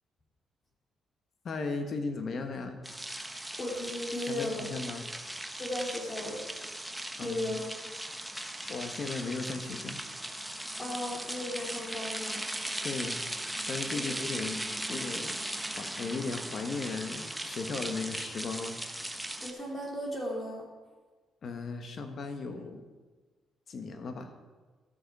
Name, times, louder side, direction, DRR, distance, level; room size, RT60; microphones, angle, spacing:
voice 1, 1.4-2.8 4.3-5.0 7.2-7.5 8.7-10.0 12.8-13.2 13.7-14.6 14.9-15.4 15.7-18.8 21.4-22.8 23.7-24.3, left 4 dB, 55° left, 6 dB, 1.3 m, -36 dB
sound 1, 2.8-19.5, right 1 dB, 5° right, 0.9 m, -38 dB
voice 2, 3.6-4.7 5.6-6.4 7.2-7.6 10.8-12.4 13.9-14.1 19.4-20.7, left 1 dB, 35° left, -2 dB, 3.1 m, -36 dB
12.5 x 6.8 x 4.8 m, 1.3 s
cardioid pair, 90°, 0 cm